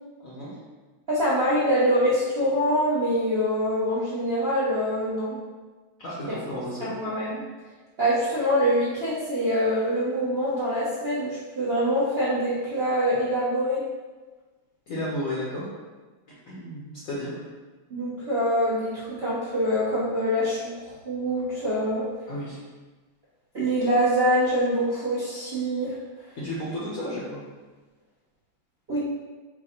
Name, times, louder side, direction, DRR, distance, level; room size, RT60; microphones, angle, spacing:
voice 1, 1.1-5.4 6.3-6.4 6.8-7.4 8.0-13.8 17.9-22.0 23.5-25.9 28.9-29.0, equal, 50° right, -10 dB, 0.7 m, -24 dB
voice 2, 6.0-6.9 14.9-15.7 16.5-17.4 22.3-22.6 26.4-27.4, left 1 dB, 55° left, -7 dB, 1.0 m, -33 dB
4.6 x 2.3 x 4.2 m, 1.3 s
omnidirectional pair, 2.3 m